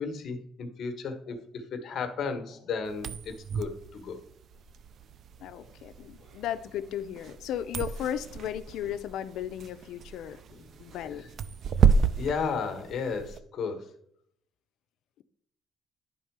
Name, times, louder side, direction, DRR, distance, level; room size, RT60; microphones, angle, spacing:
voice 1, 0.0-4.2 5.5-5.6 10.5-10.7 11.0-11.3 11.7-11.8 12.2-13.9, left 5 dB, 55° left, 1.3 m, -34 dB
sound 1, 2.9-13.4, right 6 dB, 55° right, 0.4 m, -31 dB
voice 2, 5.4-10.4 10.8-11.2, left 10 dB, 80° left, 0.5 m, -35 dB
11.0 x 3.7 x 4.7 m
cardioid pair, 135°, 0 cm